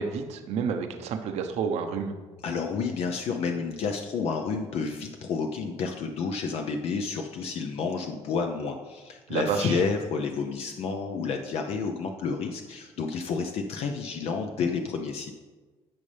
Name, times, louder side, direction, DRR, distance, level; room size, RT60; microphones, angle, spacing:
voice 1, 0.0-2.1 9.3-9.8, right 6 dB, 80° right, 6 dB, 1.0 m, -29 dB
voice 2, 2.4-15.3, left 5 dB, 70° left, 4 dB, 0.7 m, -30 dB
14.0 x 5.4 x 3.4 m, 1.3 s
cardioid pair, 105°, 11 cm